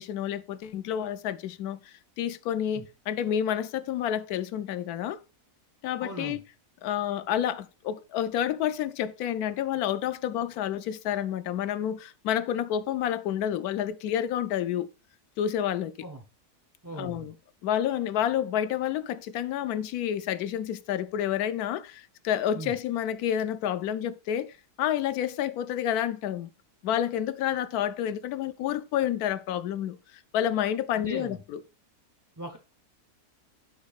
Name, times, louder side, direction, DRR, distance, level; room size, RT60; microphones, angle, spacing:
voice 1, 0.0-5.2 5.8-6.4 6.8-14.9 15.4-15.9 17.0-17.4 17.6-26.5 26.8-31.6, left 10 dB, 75° left, 1.0 m, -29 dB
voice 2, 6.0-6.4 16.0-16.2 16.8-17.3 22.5-22.7 30.9-31.4 32.4-32.6, right 1 dB, 25° right, 0.4 m, -38 dB
8.2 x 6.1 x 2.4 m
omnidirectional pair, 1.7 m